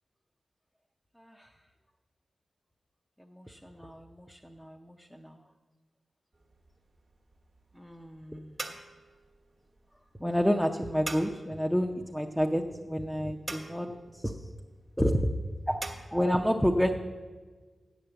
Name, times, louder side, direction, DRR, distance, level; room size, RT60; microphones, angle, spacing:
voice 1, 1.2-1.5 3.3-5.4 7.8-8.6 10.2-14.4 15.0-15.3 15.7-16.9, equal, ahead, 2 dB, 0.6 m, -30 dB
sound 1, 6.3-16.0, right 2 dB, 40° right, 1.2 m, -45 dB
8.3 x 6.7 x 7.9 m, 1.4 s
wide cardioid pair, 85°, 0 cm